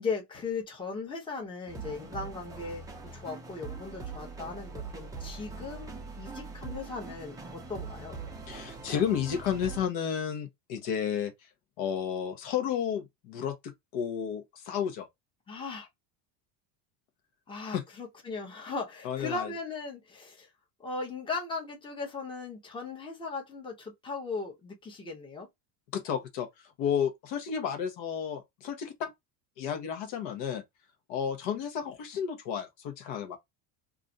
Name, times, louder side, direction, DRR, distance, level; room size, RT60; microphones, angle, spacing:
voice 1, 0.0-8.2 15.5-15.9 17.5-20.5 20.8-25.5, left 4 dB, 10° left, 0.8 m, -38 dB
sound 1, 1.7-9.9, right 4 dB, 10° right, 0.4 m, -42 dB
voice 2, 8.5-11.3 11.8-15.1 17.7-17.8 19.0-19.5 25.9-26.5 26.8-29.1 29.6-30.6 31.1-33.4, left 8 dB, 70° left, 1.0 m, -32 dB
2.5 x 2.4 x 3.9 m
cardioid pair, 140°, 47 cm